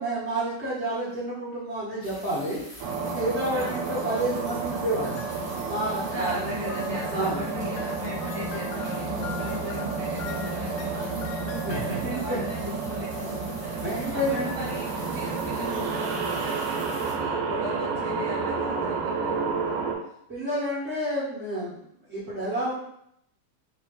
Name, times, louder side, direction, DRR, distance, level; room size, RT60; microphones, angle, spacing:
voice 1, 0.0-2.6 3.0-5.2 5.6-6.3 7.1-7.4 9.4-9.6 11.6-12.4 13.7-14.6 20.3-21.8 22.1-22.8, right 1 dB, 35° right, -12 dB, 1.1 m, -29 dB
sound 1, 2.0-17.1, equal, 25° left, 1.0 m, -46 dB
sound 2, 2.8-19.9, right 4 dB, 80° right, 2.0 m, -30 dB
voice 2, 3.5-4.1 6.1-19.8, equal, 65° left, -10 dB, 0.4 m, -38 dB
sound 3, 4.7-5.7 6.7-11.9, left 8 dB, 90° left, 2.1 m, -44 dB
5.4 x 2.9 x 3.1 m, 0.74 s
omnidirectional pair, 3.6 m